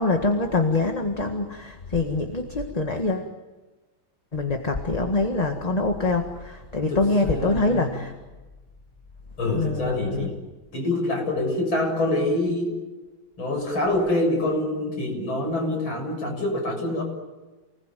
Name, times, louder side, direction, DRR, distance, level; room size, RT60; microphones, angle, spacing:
voice 1, 0.0-3.3 4.3-8.1 9.4-10.3, left 2 dB, 20° left, 4 dB, 1.6 m, -25 dB
voice 2, 6.9-8.1 9.4-10.4 10.7-12.7 13.4-17.0, left 1 dB, 80° left, 1 dB, 8.4 m, -26 dB
29.0 x 21.0 x 9.3 m, 1.2 s
omnidirectional pair, 2.2 m